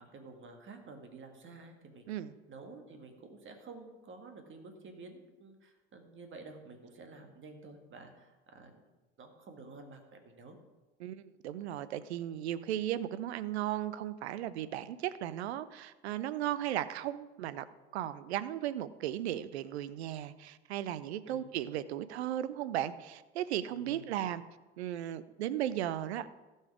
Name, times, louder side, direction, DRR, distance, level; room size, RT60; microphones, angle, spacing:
voice 1, 0.0-2.1 2.5-8.9 9.2-10.6 21.3-21.4 23.7-24.1, right 3 dB, 35° right, 4 dB, 1.8 m, -51 dB
voice 2, 11.0-17.6 17.9-24.4 24.8-26.3, right 12 dB, 65° right, 15 dB, 0.6 m, -36 dB
16.0 x 5.6 x 4.9 m, 1.2 s
figure-of-eight pair, 70°, 35 cm